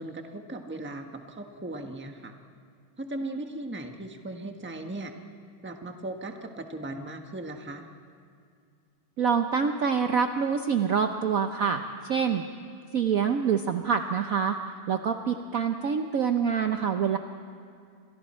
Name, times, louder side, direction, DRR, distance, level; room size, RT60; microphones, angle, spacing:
voice 1, 0.0-2.3 3.0-5.1 5.6-7.9, right 2 dB, 5° right, 4 dB, 1.0 m, -37 dB
voice 2, 9.2-12.4 12.9-14.6 14.9-17.2, right 6 dB, 55° right, 6 dB, 1.0 m, -26 dB
30.0 x 26.0 x 4.4 m, 2.3 s
omnidirectional pair, 2.2 m